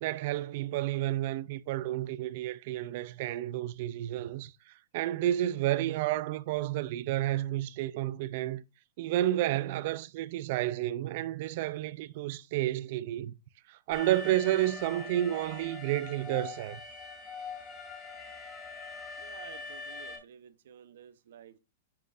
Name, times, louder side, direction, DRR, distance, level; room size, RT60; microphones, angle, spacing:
voice 1, 0.0-8.6 9.0-13.3 13.7-16.8, right 14 dB, 40° right, 0.4 m, -31 dB
Alarm, 13.9-20.2, left 4 dB, 15° left, 2.2 m, -43 dB
voice 2, 19.2-21.6, right 9 dB, 65° right, 0.8 m, -52 dB
10.5 x 6.4 x 2.5 m
supercardioid pair, 170°, 0 cm